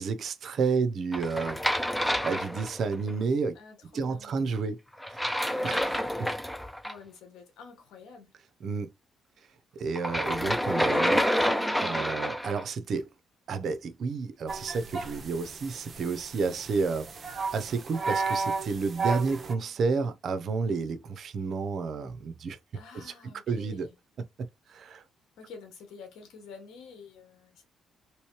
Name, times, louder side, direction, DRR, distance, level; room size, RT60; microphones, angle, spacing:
voice 1, 0.0-1.8 2.2-3.6 3.9-4.8 5.6-6.3 8.6-8.9 9.7-11.2 11.8-13.1 13.5-22.6 22.9-23.1 23.5-23.9 24.4-25.0, right 4 dB, 60° right, 0.7 m, -31 dB
sound 1, 1.1-3.1 5.0-6.9 9.9-12.6, equal, 5° left, 0.5 m, -28 dB
voice 2, 3.5-4.4 6.8-8.3 11.0-11.6 22.7-23.9 25.4-27.7, left 5 dB, 85° left, 1.2 m, -48 dB
sound 2, 14.5-19.5, right 4 dB, 40° right, 0.9 m, -33 dB
3.1 x 3.1 x 3.0 m
cardioid pair, 90°, 0 cm